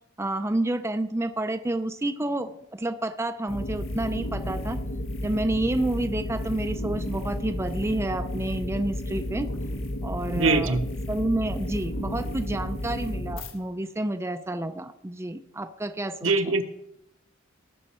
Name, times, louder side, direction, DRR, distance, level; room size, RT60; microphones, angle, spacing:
voice 1, 0.2-4.8 5.2-9.5 10.0-16.6, right 1 dB, 15° right, 8 dB, 0.5 m, -29 dB
sound 1, 3.5-13.5, left 1 dB, 80° left, 1.5 m, -32 dB
voice 2, 10.3-10.8 16.2-16.6, right 3 dB, 70° right, 7 dB, 1.0 m, -22 dB
19.0 x 6.4 x 4.3 m, 0.80 s
head